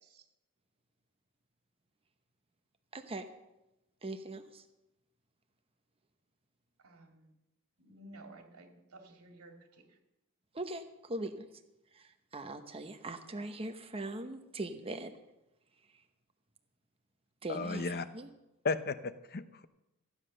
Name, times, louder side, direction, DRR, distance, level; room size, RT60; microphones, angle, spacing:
voice 1, 2.9-3.3 4.0-4.6 10.5-11.5 11.9-15.1 17.4-18.3, right 2 dB, 25° right, 7 dB, 1.0 m, -41 dB
voice 2, 6.8-7.3 7.8-9.5, right 2 dB, 90° right, 3 dB, 2.6 m, -54 dB
voice 3, 17.5-18.0 18.6-19.6, left 4 dB, 45° left, 12 dB, 0.8 m, -34 dB
15.0 x 9.8 x 6.6 m, 0.95 s
head